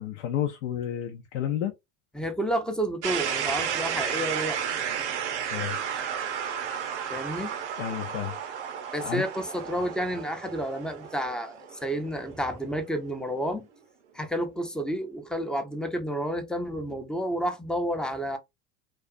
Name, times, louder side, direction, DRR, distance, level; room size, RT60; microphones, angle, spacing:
voice 1, 0.0-1.7 5.5-5.8 7.8-8.3 9.0-9.2, left 11 dB, 75° left, 0.7 m, -31 dB
voice 2, 2.1-4.6 7.1-7.5 8.9-13.6 14.1-18.4, equal, ahead, 0.6 m, -30 dB
sound 1, 3.0-12.9, right 8 dB, 90° right, 0.7 m, -33 dB
2.4 x 2.3 x 2.4 m
hypercardioid pair, 90°, 34 cm